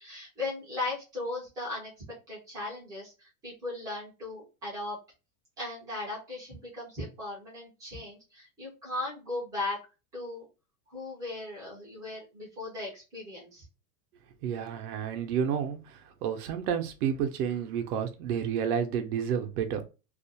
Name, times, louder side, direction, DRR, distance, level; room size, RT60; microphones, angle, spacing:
voice 1, 0.0-1.9 2.3-5.0 5.6-9.8 10.1-10.4 10.9-13.6, left 2 dB, 10° right, -7 dB, 0.3 m, -37 dB
voice 2, 14.4-19.8, right 8 dB, 80° right, 6 dB, 0.6 m, -30 dB
2.4 x 2.1 x 2.6 m, 0.30 s
supercardioid pair, 165°, 44 cm